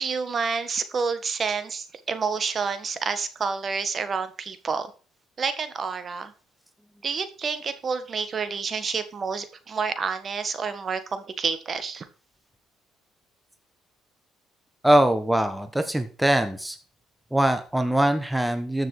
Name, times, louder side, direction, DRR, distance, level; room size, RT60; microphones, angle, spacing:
voice 1, 0.0-4.9 5.4-6.3 7.0-12.1, right 5 dB, 35° right, 11 dB, 1.7 m, -29 dB
voice 2, 14.8-16.8 17.3-18.9, right 1 dB, 5° right, 9 dB, 1.3 m, -22 dB
13.5 x 6.7 x 4.9 m, 0.38 s
cardioid pair, 110°, 0 cm